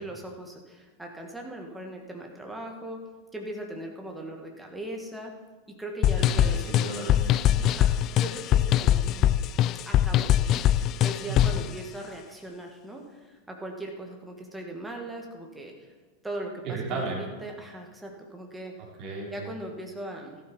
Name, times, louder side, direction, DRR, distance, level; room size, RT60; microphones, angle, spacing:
voice 1, 0.0-3.0 3.3-5.3 5.8-6.7 7.6-9.4 9.9-15.9 16.2-18.7 19.3-20.4, right 1 dB, 5° right, 1 dB, 2.2 m, -39 dB
sound 1, 6.0-11.7, left 11 dB, 35° left, 0.3 m, -22 dB
voice 2, 6.2-7.7 11.3-11.6 16.6-17.3 19.0-19.5, right 4 dB, 40° right, -3 dB, 4.0 m, -34 dB
14.0 x 12.0 x 4.7 m, 1.3 s
figure-of-eight pair, 90°, 0 cm